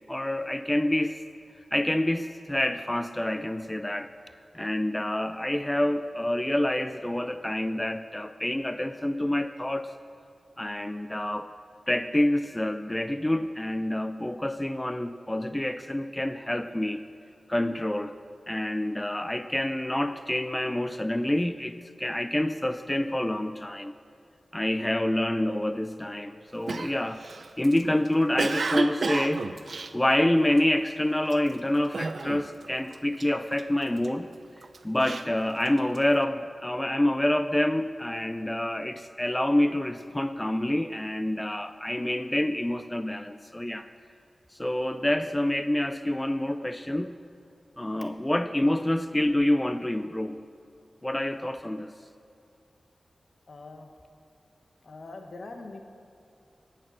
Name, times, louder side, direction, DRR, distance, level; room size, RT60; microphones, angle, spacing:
voice 1, 0.1-1.2 1.7-4.1 4.5-10.0 10.6-11.5 11.9-17.0 17.5-18.2 18.5-23.9 24.5-27.3 27.6-29.5 29.9-34.3 34.8-43.9 44.5-47.1 47.8-50.4 51.0-51.9, left 1 dB, 15° left, 10 dB, 0.4 m, -27 dB
Cough, 26.7-30.8 31.2-31.5 31.9-32.7 32.9-34.1 34.6-36.1, right 3 dB, 70° right, 0.5 m, -32 dB
voice 2, 53.5-53.9 54.8-55.8, left 3 dB, 75° left, 4 dB, 1.3 m, -42 dB
18.5 x 6.6 x 6.3 m, 2.4 s
cardioid pair, 45°, 0 cm